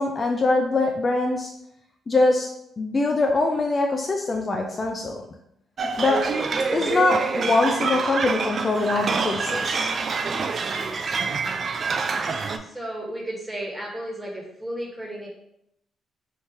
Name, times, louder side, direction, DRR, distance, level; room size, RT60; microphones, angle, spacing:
voice 1, 0.0-1.5 2.1-5.2 6.0-6.2 6.7-9.9, left 3 dB, 35° left, 2 dB, 0.4 m, -23 dB
sound 1, 5.8-12.6, right 4 dB, 45° right, 0.4 m, -26 dB
voice 2, 12.6-15.3, right 1 dB, 10° right, -2 dB, 1.4 m, -33 dB
3.5 x 2.8 x 4.4 m, 0.77 s
cardioid pair, 90°, 0 cm